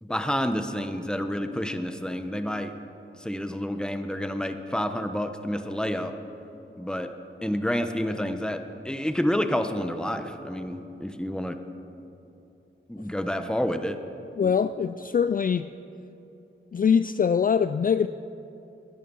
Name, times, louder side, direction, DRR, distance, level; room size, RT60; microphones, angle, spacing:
voice 1, 0.0-2.7 3.2-6.2 6.7-7.1 7.4-11.6 12.9-14.0 14.4-14.5, equal, 5° left, 7 dB, 1.1 m, -29 dB
voice 2, 14.4-15.7 16.7-18.1, left 7 dB, 40° left, 12 dB, 0.4 m, -23 dB
20.5 x 10.5 x 5.5 m, 2.9 s
cardioid pair, 60°, 21 cm